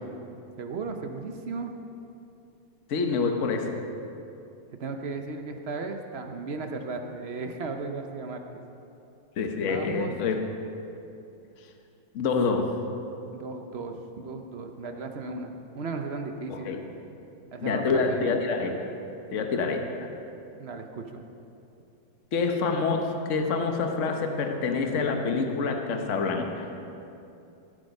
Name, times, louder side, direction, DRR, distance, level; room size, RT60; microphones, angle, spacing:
voice 1, 0.6-1.7 4.7-8.4 9.7-10.1 13.4-16.8 17.5-18.3 20.6-21.2, right 4 dB, 60° right, 5 dB, 0.6 m, -35 dB
voice 2, 2.9-3.8 9.4-10.4 12.1-12.7 16.5-16.8 17.6-18.8 19.3-19.8 22.3-26.7, left 4 dB, 45° left, 4 dB, 1.2 m, -27 dB
15.5 x 9.1 x 5.4 m, 2.8 s
omnidirectional pair, 2.0 m